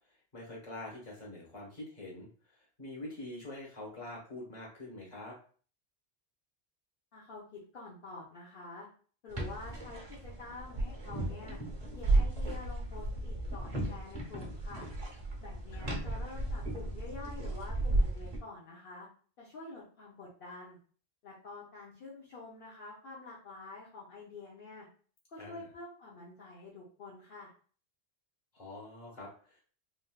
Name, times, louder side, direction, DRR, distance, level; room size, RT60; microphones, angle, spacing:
voice 1, 0.3-5.4 15.7-15.9 25.4-25.7 28.5-29.6, left 2 dB, 40° left, -4 dB, 1.4 m, -45 dB
voice 2, 7.1-8.9 9.2-11.6 12.0-14.9 15.4-19.1 19.4-20.8 21.2-24.9 25.3-27.5, left 3 dB, 60° left, -6 dB, 1.0 m, -48 dB
sound 1, 9.3-18.4, right 2 dB, 40° right, 0.9 m, -34 dB
3.6 x 2.6 x 2.3 m, 0.42 s
omnidirectional pair, 1.1 m